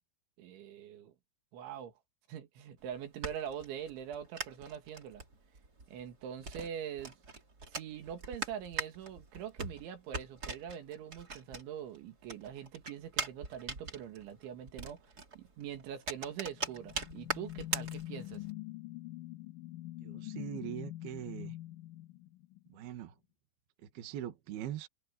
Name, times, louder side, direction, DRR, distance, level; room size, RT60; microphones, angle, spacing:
voice 1, 0.4-1.1 1.5-1.9 2.3-5.2 5.9-7.1 7.7-18.5, right 9 dB, 85° right, 4.5 m, -43 dB
sound 1, 2.8-12.0 12.2-18.5, right 3 dB, 25° right, 2.6 m, -41 dB
sound 2, 16.3-22.9, left 16 dB, 65° left, 2.1 m, -45 dB
voice 2, 20.0-21.5 22.7-23.1 23.8-24.9, right 11 dB, 60° right, 3.5 m, -42 dB
omnidirectional pair, 5.2 m